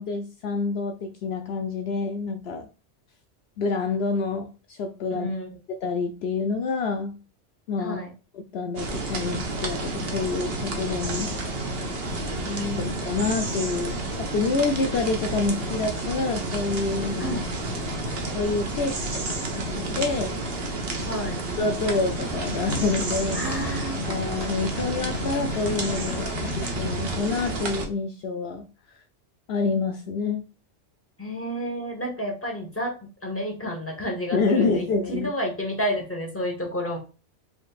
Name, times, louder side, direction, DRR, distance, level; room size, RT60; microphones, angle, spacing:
voice 1, 0.0-2.7 3.6-5.3 5.8-7.1 7.7-8.0 8.3-11.3 12.8-17.4 18.3-20.4 21.6-23.4 24.1-28.6 29.5-30.5 34.3-35.3, left 4 dB, 70° left, 5 dB, 0.8 m, -27 dB
voice 2, 5.1-5.5 7.8-8.1 12.4-13.0 17.2-17.4 21.1-21.4 23.3-24.1 31.2-37.0, equal, 10° left, 0 dB, 1.5 m, -30 dB
sound 1, 8.8-27.9, right 2 dB, 60° right, 1.2 m, -30 dB
sound 2, 22.1-27.2, left 1 dB, 85° left, 1.4 m, -35 dB
5.1 x 3.9 x 2.4 m, 0.32 s
omnidirectional pair, 1.2 m